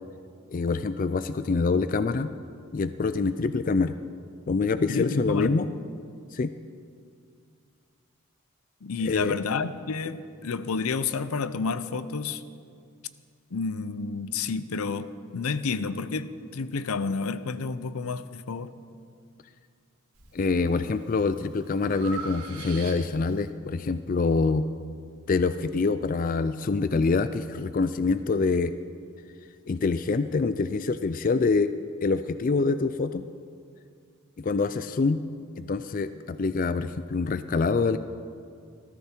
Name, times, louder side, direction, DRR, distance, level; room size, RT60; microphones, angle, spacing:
voice 1, 0.5-2.3 2.7-4.0 4.5-5.7 6.3-6.5 9.0-9.3 20.3-24.7 25.3-28.7 29.7-31.7 32.0-33.2 34.4-35.2 35.6-38.0, left 4 dB, 40° left, 12 dB, 0.3 m, -25 dB
voice 2, 4.9-5.6 8.8-12.4 13.5-18.7, left 4 dB, 80° left, 14 dB, 0.6 m, -30 dB
Breathing, 20.1-20.6 21.1-23.4, right 4 dB, 90° right, 2.7 m, -41 dB
19.5 x 14.0 x 4.4 m, 2.3 s
head